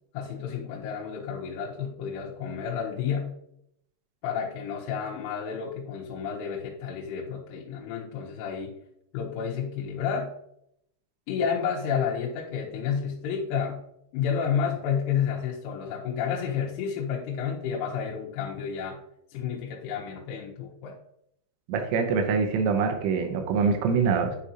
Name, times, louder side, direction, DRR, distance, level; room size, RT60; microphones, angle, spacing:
voice 1, 0.1-3.3 4.2-8.8 9.1-10.3 11.3-13.8 14.1-19.0 19.3-21.0, left 7 dB, 85° left, -3 dB, 3.5 m, -30 dB
voice 2, 21.7-24.4, right 5 dB, 85° right, 4 dB, 3.5 m, -24 dB
10.0 x 5.1 x 2.8 m, 0.73 s
omnidirectional pair, 5.5 m